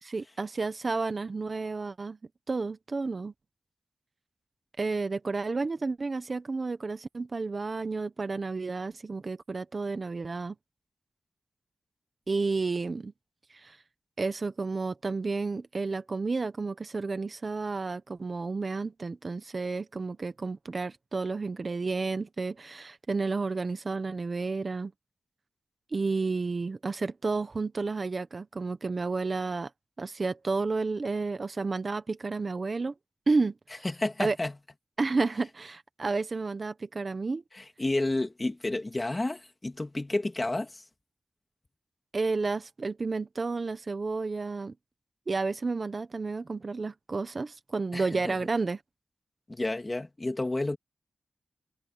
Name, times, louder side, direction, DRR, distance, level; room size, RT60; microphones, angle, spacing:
voice 1, 0.0-2.2 2.5-3.3 4.8-10.6 12.3-13.1 13.5-13.8 14.2-24.9 25.9-29.7 30.0-32.9 33.3-33.8 34.2-34.4 35.0-37.4 42.1-44.7 45.3-48.8, right 3 dB, 45° right, 1.2 m, -31 dB
voice 2, 33.8-34.6 37.5-40.9 47.9-48.4 49.5-50.8, left 2 dB, 25° left, 3.0 m, -31 dB
wide cardioid pair, 80°, 0 cm